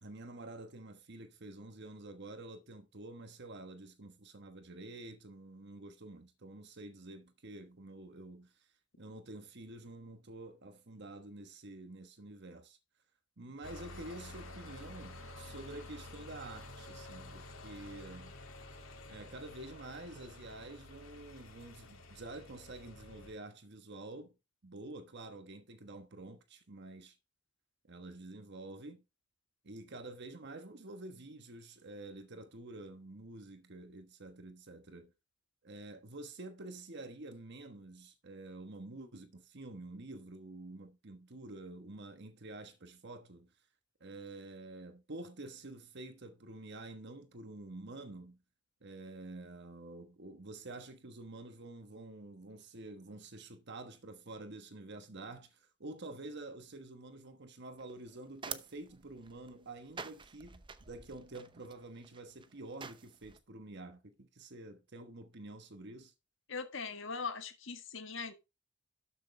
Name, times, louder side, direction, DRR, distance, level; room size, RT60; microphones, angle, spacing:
voice 1, 0.0-8.7 9.0-12.8 13.4-18.4 19.1-24.3 24.6-27.2 27.9-29.0 29.6-35.1 35.6-43.5 44.0-48.4 48.8-66.1, right 2 dB, 55° right, 1.3 m, -48 dB
sound 1, 13.6-23.3, left 2 dB, 80° left, 2.5 m, -50 dB
sound 2, 57.8-63.4, right 5 dB, 25° right, 0.7 m, -49 dB
voice 2, 66.5-68.3, left 5 dB, 65° left, 1.8 m, -40 dB
12.5 x 6.6 x 3.3 m
head